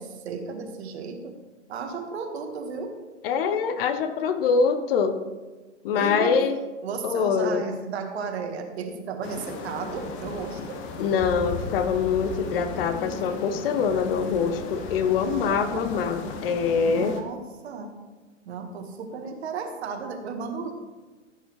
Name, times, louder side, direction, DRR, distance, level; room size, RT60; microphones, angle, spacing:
voice 1, 0.0-1.4 1.7-3.0 6.0-6.4 6.8-10.8 15.2-15.9 16.8-18.0 18.5-20.7, right 5 dB, 60° right, 5 dB, 1.7 m, -34 dB
voice 2, 3.2-5.2 5.8-6.6 7.0-7.7 11.0-17.1, left 6 dB, 50° left, 8 dB, 1.1 m, -24 dB
sound 1, 9.2-17.2, left 4 dB, 35° left, 1.3 m, -36 dB
15.0 x 8.8 x 3.3 m, 1.3 s
figure-of-eight pair, 95°, 36 cm